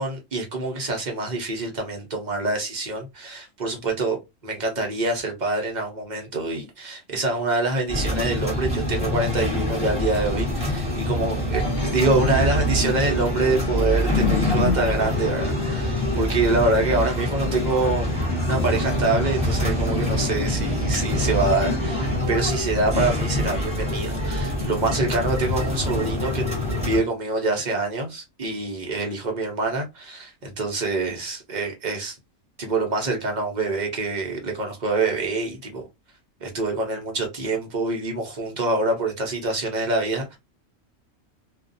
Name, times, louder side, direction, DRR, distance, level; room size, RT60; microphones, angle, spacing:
voice 1, 0.0-18.1 18.4-26.4 26.8-32.1 32.6-35.8 36.4-40.4, right 3 dB, 40° right, 0.7 m, -25 dB
sound 1, 7.9-27.0, left 1 dB, 5° right, 0.9 m, -25 dB
sound 2, 9.0-22.2, left 2 dB, 55° left, 0.8 m, -35 dB
2.5 x 2.3 x 2.5 m
omnidirectional pair, 1.4 m